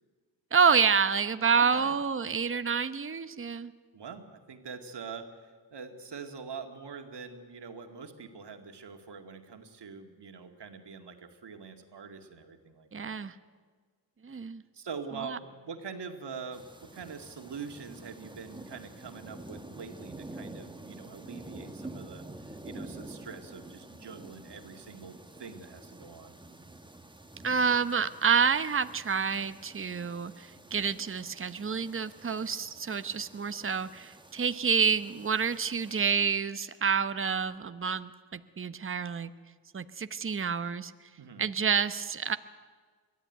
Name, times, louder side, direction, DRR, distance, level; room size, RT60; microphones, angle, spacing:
voice 1, 0.5-3.7 12.9-13.3 14.2-14.6 15.2-15.4 27.4-39.3 39.7-40.9 41.4-42.4, right 6 dB, 30° right, 12 dB, 0.9 m, -28 dB
voice 2, 3.9-13.2 14.7-26.4 41.2-41.5, right 5 dB, 65° right, 5 dB, 2.2 m, -44 dB
sound 1, 16.5-36.0, right 2 dB, 10° right, 1.4 m, -48 dB
22.0 x 13.5 x 9.2 m, 1.6 s
cardioid pair, 55°, 45 cm